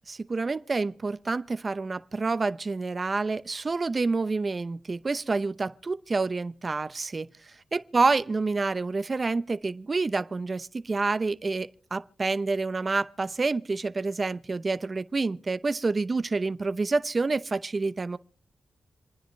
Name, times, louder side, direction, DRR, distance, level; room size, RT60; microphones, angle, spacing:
voice 1, 0.1-7.3 7.7-18.2, right 3 dB, 45° right, 0.8 m, -28 dB
28.0 x 10.0 x 3.2 m
cardioid pair, 55°, 0 cm